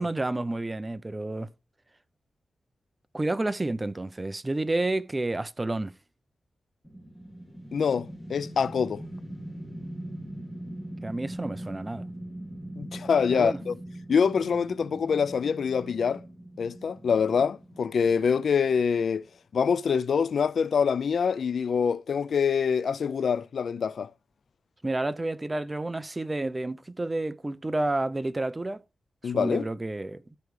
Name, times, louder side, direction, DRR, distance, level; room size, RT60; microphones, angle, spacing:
voice 1, 0.0-1.5 3.1-5.9 11.0-12.0 13.3-13.6 24.8-28.8 29.2-30.2, right 2 dB, 25° right, 0.6 m, -30 dB
sound 1, 6.8-19.1, right 1 dB, 5° left, 2.4 m, -41 dB
voice 2, 7.7-9.0 12.8-13.7 14.1-16.2 16.6-19.3 19.5-24.1 29.2-29.7, left 6 dB, 75° left, 0.4 m, -25 dB
13.5 x 4.7 x 3.2 m
cardioid pair, 80°, 0 cm